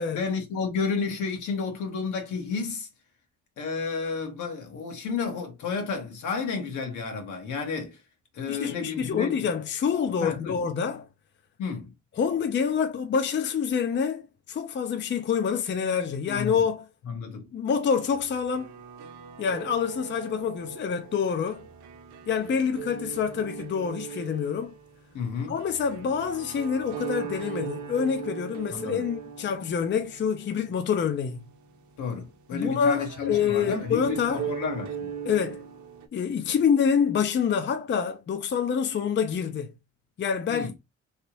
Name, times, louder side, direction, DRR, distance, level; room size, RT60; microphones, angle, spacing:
voice 1, 0.0-2.9 3.6-8.0 8.3-9.3 10.2-10.6 11.6-11.9 16.3-16.6 17.1-17.5 25.1-25.6 28.7-29.0 32.0-35.1 40.5-40.7, left 5 dB, 80° left, 1.3 m, -31 dB
voice 2, 8.5-11.1 12.2-16.9 17.5-18.7 19.4-21.6 22.3-24.7 25.5-31.5 32.5-34.5 35.3-35.6 36.1-39.7 40.2-40.7, left 7 dB, 40° left, 0.5 m, -27 dB
sound 1, 18.1-36.1, right 8 dB, 70° right, 0.8 m, -40 dB
3.2 x 2.8 x 2.9 m
cardioid pair, 90°, 30 cm